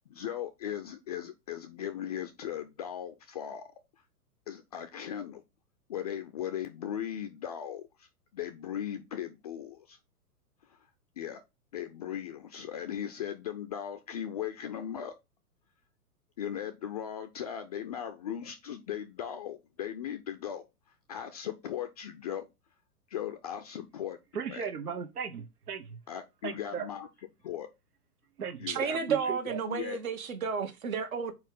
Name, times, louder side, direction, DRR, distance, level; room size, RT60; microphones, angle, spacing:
voice 1, 0.0-3.6 4.5-5.4 5.9-8.1 8.3-10.0 10.7-10.8 11.2-11.4 11.7-15.1 16.4-20.7 21.1-22.5 23.1-24.2 24.5-24.7 26.1-27.1 27.4-27.7 28.6-29.3 29.7-30.0, left 10 dB, 25° left, 0.4 m, -38 dB
voice 2, 24.3-26.0 26.4-26.9 28.4-29.6, right 7 dB, 80° right, 1.1 m, -37 dB
voice 3, 28.7-31.3, right 6 dB, 60° right, 1.4 m, -32 dB
4.7 x 4.3 x 5.4 m
figure-of-eight pair, 115°, 46 cm